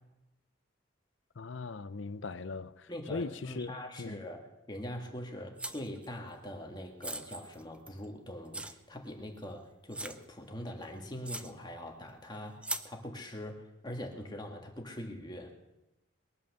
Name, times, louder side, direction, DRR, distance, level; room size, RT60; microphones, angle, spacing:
voice 1, 1.4-3.7 4.0-4.2, left 4 dB, 70° left, 0.7 m, -39 dB
voice 2, 2.9-15.5, left 1 dB, 20° left, 1.7 m, -43 dB
sound 1, 5.6-6.1 7.0-8.1 8.5-8.7 9.4-9.5 9.9-10.2 10.8-10.9 11.3-11.5 12.6-12.9, right 2 dB, 5° right, 0.6 m, -39 dB
21.5 x 9.0 x 6.6 m
head